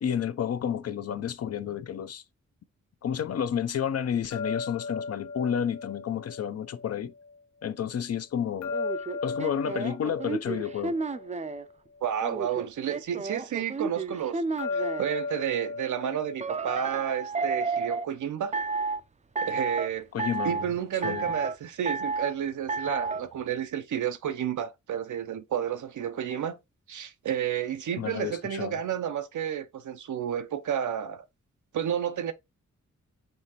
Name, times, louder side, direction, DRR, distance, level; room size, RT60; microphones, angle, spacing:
voice 1, 0.0-2.2 3.0-7.1 7.6-8.7 9.2-11.0 20.1-20.6 21.0-21.3 28.0-28.8, left 8 dB, 55° left, 0.5 m, -30 dB
sound 1, 4.3-7.4 8.6-12.1 14.6-17.7, left 4 dB, 75° left, 0.9 m, -37 dB
sound 2, 8.7-11.6 12.2-15.1 16.4-18.1 18.5-19.0 19.4-19.9 20.2-20.7 21.0-21.6 21.9-22.3 22.7-23.2, right 4 dB, 25° right, 0.4 m, -31 dB
voice 2, 12.0-14.4 14.7-18.6 19.4-20.1 20.4-26.6 26.9-31.2 31.7-32.3, right 9 dB, 85° right, 0.6 m, -31 dB
5.5 x 3.2 x 2.9 m
wide cardioid pair, 90°, 29 cm